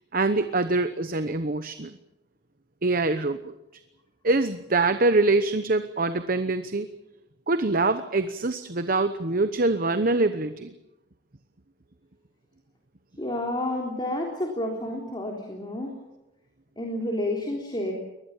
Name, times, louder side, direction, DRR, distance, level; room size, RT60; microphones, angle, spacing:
voice 1, 0.1-1.9 2.8-3.5 4.2-6.9 7.5-10.7, right 2 dB, 50° right, 10 dB, 1.0 m, -24 dB
voice 2, 13.2-15.9 16.8-17.9, left 1 dB, 25° left, 0 dB, 3.5 m, -30 dB
23.5 x 20.5 x 7.4 m, 0.96 s
head